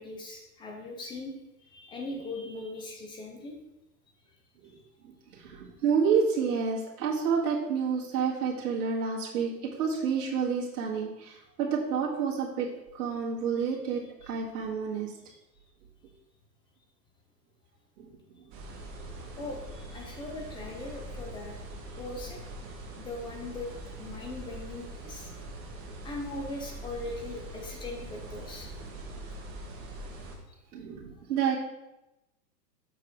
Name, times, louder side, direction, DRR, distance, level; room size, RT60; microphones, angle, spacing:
voice 1, 0.0-1.3 1.7-3.6 14.2-14.3 19.4-21.6 22.0-22.4 22.9-25.3 26.0-28.7, left 2 dB, 10° left, 0 dB, 0.5 m, -40 dB
voice 2, 5.0-9.5 9.8-12.7 12.9-15.1 18.0-18.1 30.7-31.6, right 6 dB, 65° right, -4 dB, 1.9 m, -29 dB
sound 1, 18.5-30.4, right 1 dB, 35° right, 1.7 m, -43 dB
6.7 x 4.8 x 4.6 m, 0.94 s
hypercardioid pair, 135°, 49 cm